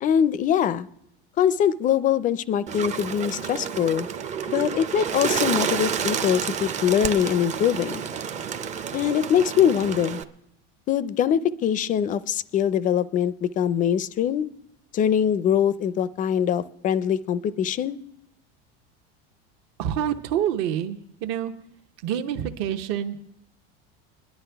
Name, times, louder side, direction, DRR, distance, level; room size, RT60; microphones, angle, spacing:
voice 1, 0.0-0.9 1.4-4.1 4.5-8.0 8.9-10.2 10.9-14.5 14.9-18.0, left 9 dB, 30° left, 17 dB, 0.4 m, -23 dB
Bird, 2.7-10.2, right 7 dB, 25° right, 0.5 m, -29 dB
voice 2, 19.8-21.5 22.0-23.2, right 10 dB, 60° right, 7 dB, 0.9 m, -27 dB
21.5 x 11.0 x 3.4 m, 0.77 s
supercardioid pair, 140°, 29 cm